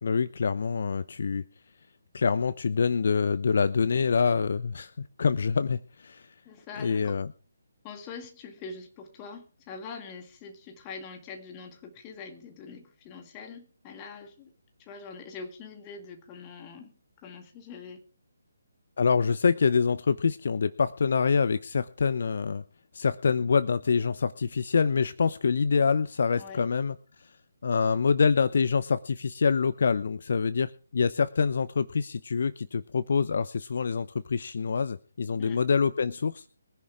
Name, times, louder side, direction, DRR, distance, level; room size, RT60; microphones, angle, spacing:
voice 1, 0.0-1.4 2.1-6.3 6.8-7.3 19.0-22.6 22.9-27.0 27.6-36.4, left 5 dB, 50° left, 15 dB, 0.7 m, -26 dB
voice 2, 6.4-7.2 7.8-14.5 14.8-16.9 17.2-18.0 26.4-26.6 35.4-35.6, left 5 dB, 20° left, 4 dB, 2.2 m, -43 dB
22.5 x 10.5 x 3.6 m, 0.37 s
figure-of-eight pair, 145°, 0 cm